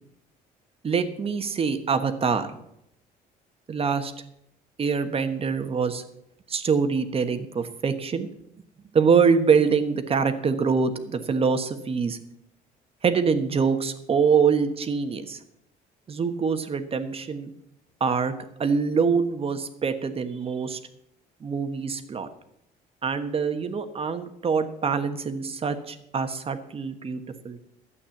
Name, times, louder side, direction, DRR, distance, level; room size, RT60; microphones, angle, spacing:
voice 1, 0.8-2.5 3.7-4.1 4.8-6.0 6.5-8.3 8.9-12.2 13.0-15.4 16.1-17.5 18.0-18.3 18.6-20.8 21.4-22.3 23.0-27.6, right 5 dB, 35° right, 8 dB, 1.3 m, -24 dB
12.0 x 8.5 x 7.1 m, 0.78 s
cardioid pair, 110°, 17 cm